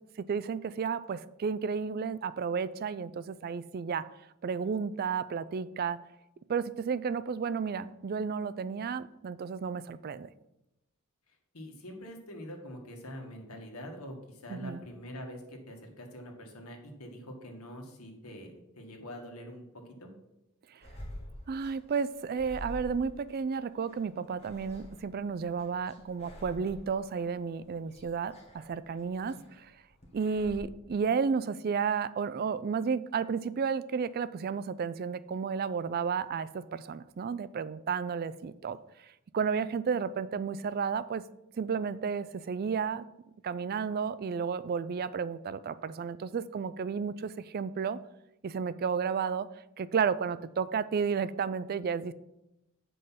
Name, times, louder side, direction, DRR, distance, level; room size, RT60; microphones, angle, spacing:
voice 1, 0.2-4.0 4.4-6.0 6.5-10.3 14.5-14.8 20.7-20.8 21.5-29.7 30.1-41.2 41.5-43.1 43.4-48.0 48.4-49.5 49.8-52.1, right 6 dB, 45° right, 16 dB, 0.3 m, -32 dB
voice 2, 11.5-20.1 29.3-29.4, equal, 75° left, 2 dB, 1.7 m, -45 dB
sound 1, 20.8-30.6, equal, 30° left, 1.6 m, -48 dB
7.8 x 5.4 x 5.7 m, 0.89 s
head